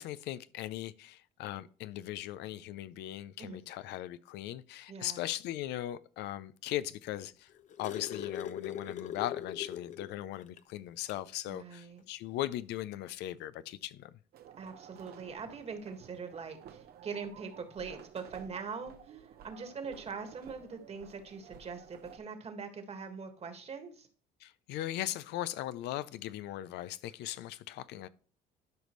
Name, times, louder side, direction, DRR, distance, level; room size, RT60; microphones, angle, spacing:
voice 1, 0.0-7.5 7.8-14.1 24.4-28.1, left 14 dB, 85° left, 0.5 m, -39 dB
voice 2, 4.9-5.2 11.5-12.0 14.6-24.1, right 5 dB, 40° right, 1.7 m, -42 dB
sound 1, 7.2-10.2 10.6-10.7 11.1-11.3 12.4-12.5, left 9 dB, 45° left, 0.7 m, -41 dB
sound 2, 14.3-22.2, right 9 dB, 65° right, 0.9 m, -53 dB
12.0 x 5.2 x 3.1 m
cardioid pair, 110°, 17 cm